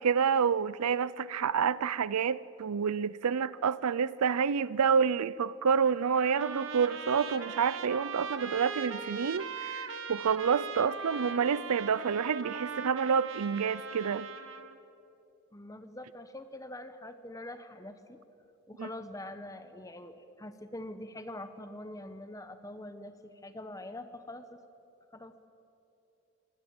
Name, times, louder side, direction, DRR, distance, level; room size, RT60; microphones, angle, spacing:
voice 1, 0.0-14.3 18.8-18.9, right 6 dB, 85° right, 0.5 m, -28 dB
Trumpet, 5.8-14.8, right 5 dB, 60° right, 1.4 m, -40 dB
voice 2, 15.5-18.2 18.7-24.6 25.1-25.3, left 1 dB, 15° left, 0.9 m, -44 dB
24.5 x 18.0 x 8.8 m
head